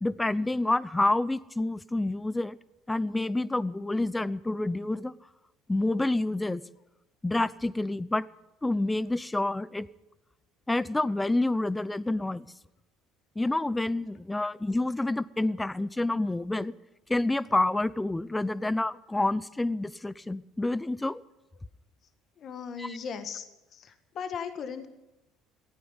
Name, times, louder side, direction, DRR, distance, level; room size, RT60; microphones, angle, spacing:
voice 1, 0.0-2.6 2.9-5.1 5.7-6.6 7.2-8.3 8.6-9.9 10.7-12.5 13.4-16.7 17.1-21.2 22.8-22.9, left 2 dB, 10° left, 19 dB, 0.6 m, -28 dB
voice 2, 22.4-24.9, left 6 dB, 50° left, 9 dB, 1.6 m, -38 dB
16.0 x 9.3 x 9.8 m, 0.98 s
supercardioid pair, 90°, 0 cm